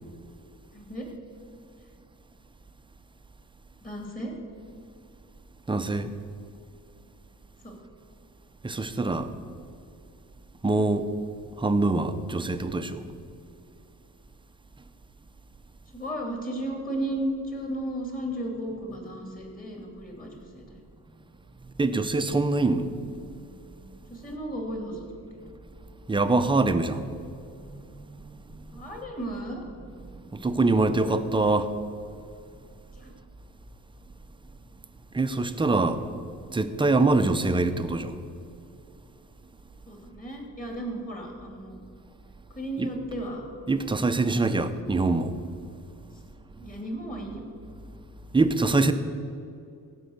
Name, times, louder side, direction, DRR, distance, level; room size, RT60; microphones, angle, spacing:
voice 1, 0.7-1.1 3.8-4.3 7.6-7.8 15.9-20.8 24.1-25.2 28.7-29.6 32.9-33.1 39.9-41.8 42.5-43.4 44.4-44.6 46.6-47.4, right 1 dB, 25° left, 2.8 m, -34 dB
voice 2, 5.7-6.1 8.6-9.3 10.6-11.1 11.6-13.1 21.8-22.9 23.2-23.3 26.1-27.0 27.5-28.6 30.3-31.7 35.1-36.0 36.5-38.2 42.8-42.9 43.7-45.4 48.3-48.9, right 3 dB, 15° right, 0.6 m, -24 dB
15.5 x 5.5 x 8.0 m
cardioid pair, 115°, 35 cm